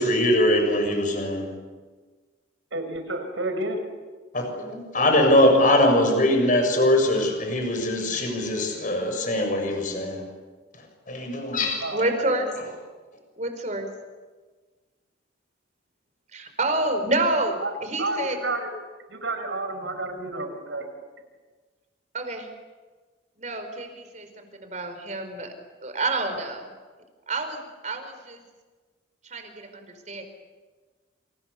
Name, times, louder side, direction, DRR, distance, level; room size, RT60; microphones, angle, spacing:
voice 1, 0.0-1.5 4.3-10.3 11.1-11.8, left 1 dB, 45° left, 4 dB, 7.3 m, -22 dB
voice 2, 2.7-3.8 11.8-12.3 17.6-17.7 18.0-18.7 19.1-20.9, right 2 dB, 90° right, 6 dB, 5.9 m, -30 dB
voice 3, 11.9-12.5 13.4-13.9 16.3-18.4 22.1-22.5 23.4-25.5 25.8-26.7 27.3-28.4 29.3-30.2, right 2 dB, 40° right, 7 dB, 4.7 m, -28 dB
28.5 x 28.0 x 7.0 m, 1.4 s
head